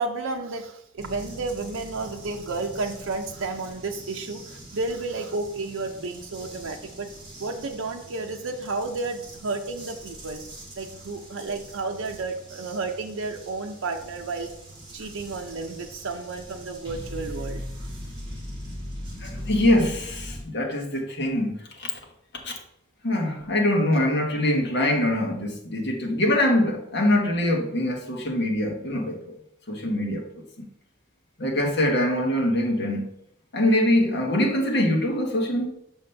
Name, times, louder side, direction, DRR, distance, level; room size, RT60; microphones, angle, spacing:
voice 1, 0.0-7.1 7.4-10.4 10.8-14.5 14.9-17.6 24.0-24.1, right 3 dB, 80° right, 0.6 m, -32 dB
sound 1, 1.0-20.4, equal, 20° right, 1.9 m, -41 dB
voice 2, 19.1-21.9 22.4-22.5 23.0-29.4 29.7-30.3 30.6-30.7 31.4-33.1 33.5-35.7, left 1 dB, 55° left, 1.3 m, -23 dB
6.3 x 5.4 x 3.3 m
head